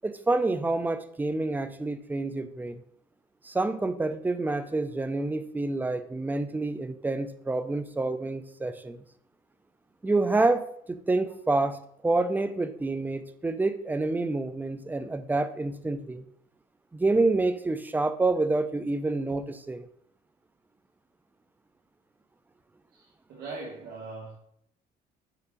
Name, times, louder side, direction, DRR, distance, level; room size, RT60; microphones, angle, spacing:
voice 1, 0.0-2.8 3.4-9.0 10.0-16.2 16.9-19.9, right 2 dB, 10° right, 11 dB, 0.5 m, -28 dB
voice 2, 22.9-24.4, right 3 dB, 70° right, -4 dB, 1.5 m, -40 dB
4.7 x 4.7 x 5.0 m, 0.69 s
cardioid pair, 110°, 17 cm